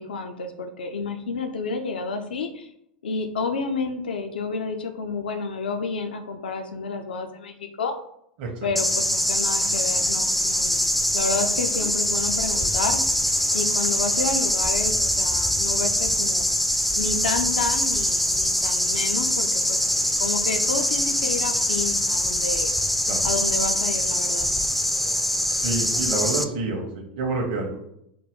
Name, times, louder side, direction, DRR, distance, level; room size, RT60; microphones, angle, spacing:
voice 1, 0.0-2.7 3.0-8.0 8.6-10.8 11.1-13.0 13.5-16.5 17.0-19.8 20.2-22.7 23.2-24.5, left 4 dB, 75° left, 6 dB, 0.4 m, -30 dB
sound 1, 8.7-26.4, left 1 dB, ahead, 0.3 m, -23 dB
voice 2, 25.6-27.8, right 3 dB, 55° right, 0 dB, 0.7 m, -28 dB
3.8 x 2.2 x 3.5 m, 0.75 s
figure-of-eight pair, 90°, 5 cm